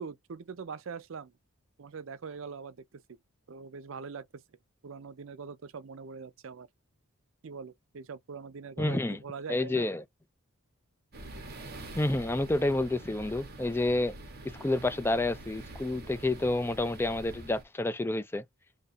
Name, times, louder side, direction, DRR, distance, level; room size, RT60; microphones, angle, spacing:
voice 1, 0.0-1.3 1.8-3.2 3.5-4.4 4.8-6.7 7.4-9.9, right 5 dB, 65° right, 0.5 m, -42 dB
voice 2, 8.8-9.2 9.5-10.0 11.9-14.2 14.6-18.4, left 2 dB, 10° left, 0.3 m, -29 dB
sound 1, 11.1-17.6, right 2 dB, 45° right, 1.0 m, -45 dB
2.7 x 2.6 x 4.1 m
head